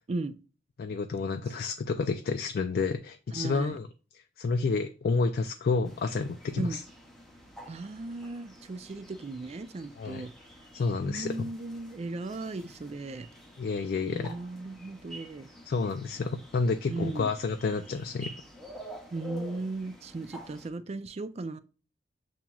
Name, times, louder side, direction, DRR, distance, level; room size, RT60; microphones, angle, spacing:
voice 1, 0.8-3.9 4.4-6.8 10.0-10.3 10.7-11.5 13.6-14.4 15.7-18.3, left 4 dB, 55° left, 0.3 m, -30 dB
voice 2, 3.3-3.8 6.6-6.8 7.7-10.3 11.0-13.3 14.1-15.5 16.9-17.3 19.1-21.6, right 3 dB, 35° right, 0.4 m, -36 dB
sound 1, 5.8-20.7, equal, ahead, 0.7 m, -49 dB
7.1 x 2.9 x 2.3 m
head